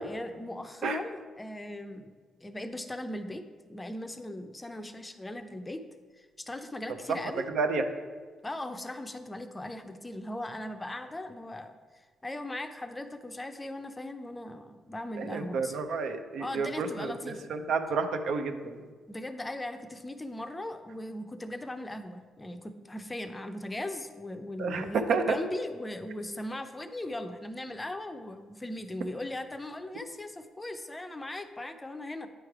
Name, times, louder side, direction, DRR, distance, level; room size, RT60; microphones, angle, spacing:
voice 1, 0.0-2.1 2.4-3.4 3.7-5.8 6.2-7.4 8.4-11.7 12.2-15.8 16.4-17.4 19.1-32.3, left 1 dB, 15° left, 8 dB, 0.5 m, -38 dB
voice 2, 7.5-7.9 15.2-18.8 24.6-25.4, right 4 dB, 70° right, 7 dB, 0.6 m, -30 dB
9.1 x 3.2 x 4.8 m, 1.5 s
cardioid pair, 90°, 0 cm